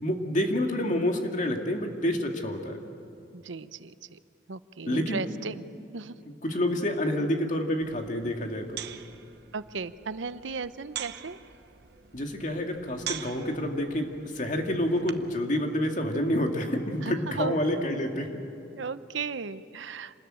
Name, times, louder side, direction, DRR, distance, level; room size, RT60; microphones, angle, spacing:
voice 1, 0.0-2.8 4.9-5.2 6.4-8.8 12.1-18.4, left 1 dB, 40° left, 3 dB, 2.2 m, -28 dB
voice 2, 3.3-4.2 4.5-6.2 9.5-11.4 17.0-17.6 18.7-20.2, right 4 dB, 85° right, 13 dB, 0.8 m, -36 dB
sound 1, 7.8-15.4, right 9 dB, 60° right, 0.9 m, -43 dB
27.0 x 20.5 x 8.9 m, 2.5 s
head